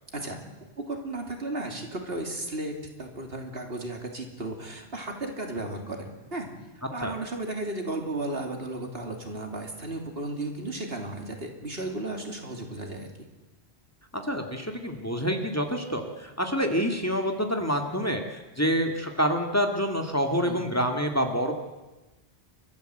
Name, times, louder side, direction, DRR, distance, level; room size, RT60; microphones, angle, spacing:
voice 1, 0.9-6.5 6.9-13.1 20.4-20.6, right 2 dB, 65° right, 3 dB, 3.2 m, -34 dB
voice 2, 14.1-18.2 18.6-21.5, equal, 15° left, 3 dB, 2.1 m, -27 dB
29.5 x 14.0 x 7.9 m, 1.1 s
omnidirectional pair, 1.1 m